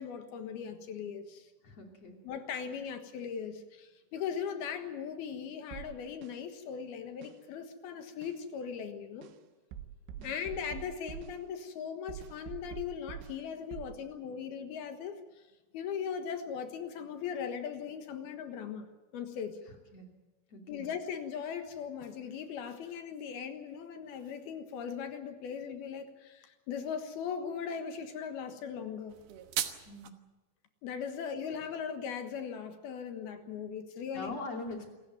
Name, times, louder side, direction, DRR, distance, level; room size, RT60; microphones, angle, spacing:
voice 1, 0.0-1.5 2.2-9.3 10.2-15.2 15.7-19.6 20.7-29.2 30.8-34.4, left 7 dB, 65° left, 7 dB, 3.1 m, -39 dB
voice 2, 1.6-2.2 10.2-10.3 19.9-20.1 20.5-20.9 29.9-30.1 34.1-34.9, left 2 dB, 40° left, 2 dB, 3.5 m, -42 dB
sound 1, 5.7-6.3 7.2-7.3 8.2-8.4 9.2-9.3 9.7-11.4 12.1-13.4 13.7-14.0, right 10 dB, 85° right, 3.6 m, -45 dB
sound 2, 29.1-30.1, right 11 dB, 70° right, 2.8 m, -36 dB
27.0 x 14.5 x 9.3 m, 1.1 s
omnidirectional pair, 5.2 m